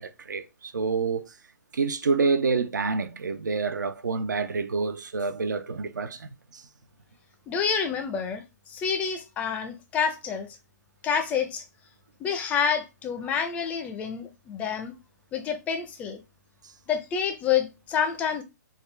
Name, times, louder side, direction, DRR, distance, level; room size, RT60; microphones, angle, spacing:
voice 1, 0.0-1.3 1.7-6.6, right 4 dB, 85° right, 0.5 m, -28 dB
voice 2, 7.5-10.5 11.0-11.6 12.2-14.9 15.3-16.2 16.9-18.4, left 7 dB, 15° left, 0.4 m, -28 dB
3.5 x 2.2 x 3.2 m
hypercardioid pair, 140°, 10 cm